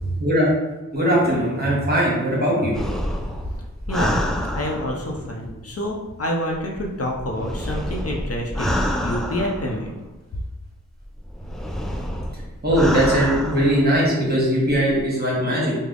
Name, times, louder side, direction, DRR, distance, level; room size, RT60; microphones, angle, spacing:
voice 1, 0.9-2.8 12.6-15.8, equal, 35° right, -5 dB, 1.3 m, -20 dB
sound 1, 2.7-5.3 6.5-10.1 11.0-14.0 14.6-15.0, equal, ahead, 0.3 m, -28 dB
voice 2, 3.9-4.2 4.5-8.8 9.0-9.9 10.3-10.4, equal, 55° left, 0 dB, 0.6 m, -27 dB
3.3 x 2.0 x 3.6 m, 1.1 s
wide cardioid pair, 60°, 29 cm